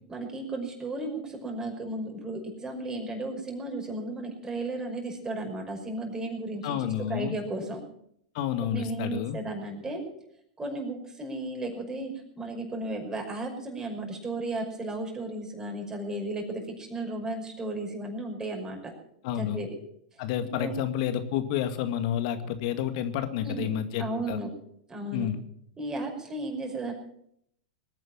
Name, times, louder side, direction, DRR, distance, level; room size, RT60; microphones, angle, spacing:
voice 1, 0.1-7.8 8.6-10.1 10.6-18.9 19.4-19.7 20.4-20.7 23.4-23.7 24.0-24.5 24.9-25.3 25.8-26.9, right 2 dB, 15° right, 1 dB, 5.7 m, -34 dB
voice 2, 6.6-7.3 8.3-9.4 19.2-19.6 20.2-24.4 25.1-25.4, left 10 dB, 60° left, 9 dB, 2.1 m, -30 dB
20.0 x 9.3 x 7.4 m, 0.72 s
hypercardioid pair, 110°, 4 cm